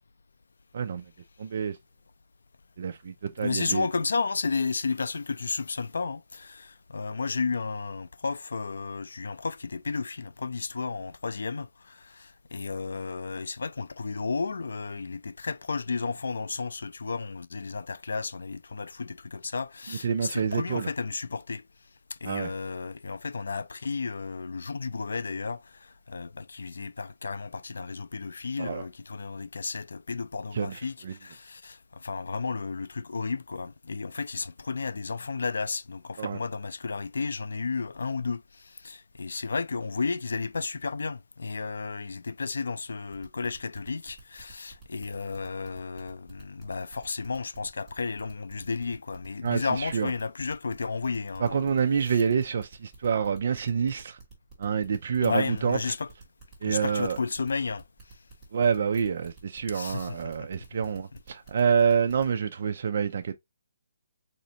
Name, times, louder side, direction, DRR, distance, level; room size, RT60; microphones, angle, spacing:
voice 1, 0.7-1.1 1.4-1.8 2.8-3.9 20.0-20.9 22.2-22.5 28.6-28.8 30.5-31.1 36.2-36.4 49.4-50.1 51.4-54.2 54.6-55.8 56.6-57.2 58.5-63.3, right 6 dB, 40° right, 0.3 m, -27 dB
voice 2, 3.4-21.6 22.2-51.8 52.0-52.2 54.9-56.1 56.6-57.8 59.7-60.8 61.1-61.2, left 4 dB, 80° left, 0.3 m, -33 dB
sound 1, 43.1-62.3, right 4 dB, ahead, 1.3 m, -51 dB
4.1 x 2.5 x 2.7 m
hypercardioid pair, 180°, 0 cm